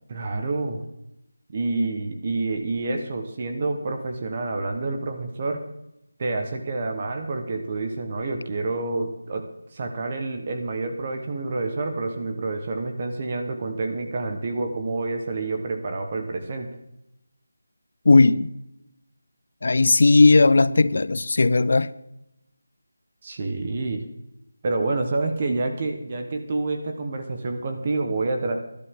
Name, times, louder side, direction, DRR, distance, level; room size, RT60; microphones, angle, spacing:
voice 1, 0.1-0.9 1.5-5.6 6.2-9.4 9.7-16.7 23.2-24.0 24.6-28.6, right 3 dB, 25° right, 1.2 m, -28 dB
voice 2, 18.1-18.5 19.6-21.9, left 3 dB, 55° left, 0.6 m, -16 dB
19.5 x 12.0 x 3.7 m
figure-of-eight pair, 175°, 0 cm